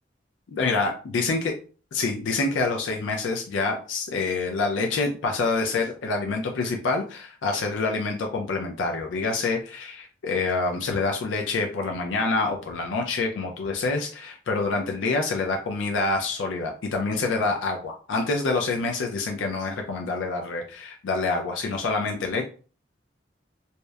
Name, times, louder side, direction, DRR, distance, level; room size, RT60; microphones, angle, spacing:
voice 1, 0.5-1.5 1.9-22.4, left 3 dB, 80° left, 2 dB, 0.4 m, -27 dB
2.8 x 2.0 x 2.3 m, 0.38 s
head